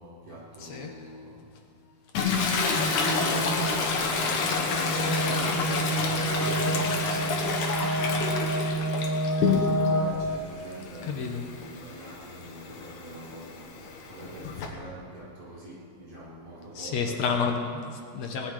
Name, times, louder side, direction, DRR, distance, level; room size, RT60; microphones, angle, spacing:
voice 1, 0.0-1.7 2.6-8.2 9.9-17.2, right 1 dB, 60° right, -7 dB, 5.9 m, -46 dB
Toilet flush, 2.1-10.0 10.4-14.7, left 4 dB, 85° left, 2.8 m, -29 dB
sound 1, 2.7-10.5, right 1 dB, 25° left, 0.4 m, -29 dB
voice 2, 11.1-11.5 16.8-18.5, left 5 dB, 70° left, 3 dB, 2.2 m, -30 dB
18.5 x 11.0 x 4.8 m, 2.2 s
omnidirectional pair, 3.4 m